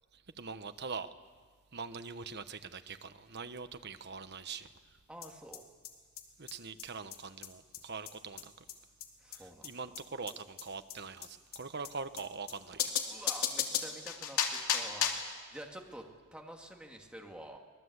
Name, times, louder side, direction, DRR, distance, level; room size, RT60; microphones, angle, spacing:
voice 1, 0.4-1.1 1.7-4.7 6.4-8.5 9.3-12.9, right 4 dB, 50° right, 10 dB, 1.1 m, -43 dB
voice 2, 5.1-5.6 9.2-9.7 13.1-17.6, right 1 dB, 5° right, 1 dB, 2.4 m, -49 dB
sound 1, 5.2-5.3 5.5-5.6 5.8-5.9 6.2-6.3 6.5-6.6 6.8-6.9 7.1-7.2 7.4-7.5 7.7-7.8 8.1-8.2 8.4-8.5 8.7-8.8 9.0-9.1 9.3-9.4 9.6-9.7 10.0-10.1 10.3-10.4 10.6-10.7 10.9-11.0 11.2-11.3 11.5-11.6 11.8-11.9 12.2-12.3 12.5-12.6 12.8-15.3, left 8 dB, 80° left, 2.6 m, -34 dB
24.5 x 20.0 x 8.2 m, 1.5 s
head